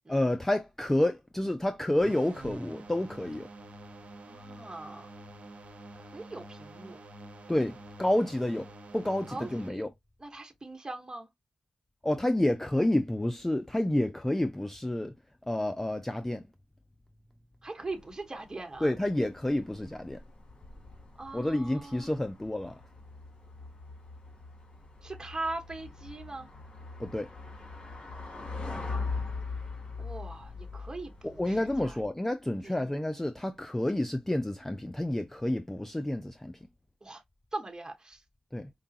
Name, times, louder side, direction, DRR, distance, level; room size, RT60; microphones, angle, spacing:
voice 1, 0.1-3.5 7.5-9.9 12.0-15.1 15.5-16.5 18.8-20.2 21.3-22.8 27.0-27.3 31.2-36.6 38.5-38.7, left 1 dB, 15° left, 0.5 m, -29 dB
sound 1, 2.0-9.7, right 2 dB, 65° right, 0.9 m, -47 dB
voice 2, 4.3-5.1 6.1-7.0 9.3-9.8 10.2-11.3 17.6-18.9 21.2-22.0 25.0-26.5 30.0-31.9 32.6-32.7 37.0-37.2 37.5-38.2, right 2 dB, 30° right, 1.2 m, -40 dB
sound 2, 17.8-32.1, left 4 dB, 45° left, 2.1 m, -42 dB
4.9 x 2.3 x 2.8 m
supercardioid pair, 45°, 2 cm